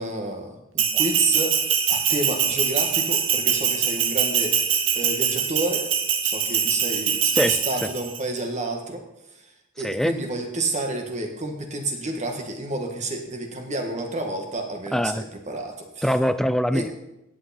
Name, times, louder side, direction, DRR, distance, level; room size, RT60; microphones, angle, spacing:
voice 1, 0.0-1.6 1.9-5.9 6.2-9.1 9.8-16.0 16.7-16.9, right 2 dB, 35° right, 3 dB, 1.7 m, -29 dB
Bell, 0.8-8.2, right 8 dB, 85° right, 1.3 m, -23 dB
voice 2, 7.3-7.9 9.8-10.2 14.9-15.3 16.0-16.9, equal, ahead, 12 dB, 0.4 m, -23 dB
17.0 x 8.2 x 4.3 m, 0.91 s
head